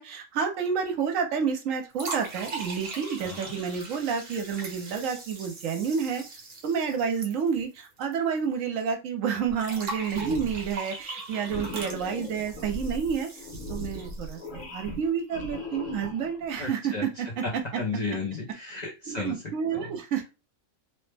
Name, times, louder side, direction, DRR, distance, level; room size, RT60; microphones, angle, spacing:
voice 1, 0.0-6.2 6.6-13.4 13.7-16.9 17.2-17.6 19.1-20.3, right 6 dB, 75° right, 5 dB, 1.1 m, -29 dB
sound 1, 1.9-8.1 8.4-8.5 9.6-14.6, right 3 dB, 50° right, 1.0 m, -40 dB
voice 2, 3.2-3.5 16.6-17.1 17.4-19.4 19.7-19.9, left 3 dB, 45° left, -3 dB, 0.6 m, -34 dB
sound 2, 9.5-9.8 10.1-10.7 11.5-16.5, left 1 dB, 70° left, 1.3 m, -38 dB
2.9 x 2.1 x 3.3 m, 0.29 s
omnidirectional pair, 1.4 m